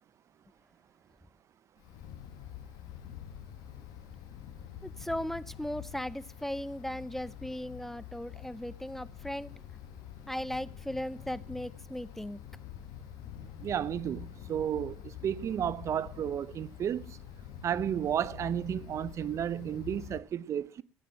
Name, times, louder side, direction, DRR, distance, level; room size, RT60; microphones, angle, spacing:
Wind, 1.8-20.2, left 10 dB, 70° left, 1.5 m, -46 dB
voice 1, 4.8-9.5 10.3-12.4, equal, 5° left, 0.6 m, -37 dB
voice 2, 13.6-17.2 17.6-20.8, right 9 dB, 50° right, 0.6 m, -32 dB
15.0 x 9.5 x 5.8 m
supercardioid pair, 75°, 7 cm